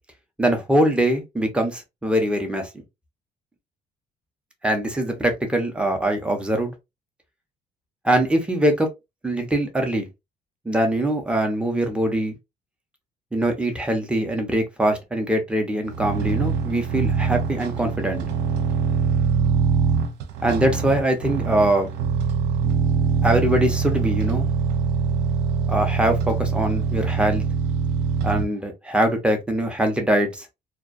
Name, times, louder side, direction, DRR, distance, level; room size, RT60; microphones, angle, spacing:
voice 1, 0.4-2.8 4.6-6.7 8.0-8.9 9.2-10.1 10.6-12.4 13.3-18.2 20.4-21.9 23.2-24.5 25.7-27.4 28.2-30.5, right 1 dB, 5° right, 0.7 m, -22 dB
sound 1, 15.9-28.5, right 5 dB, 85° right, 0.5 m, -23 dB
2.2 x 2.2 x 2.5 m
cardioid pair, 110°, 17 cm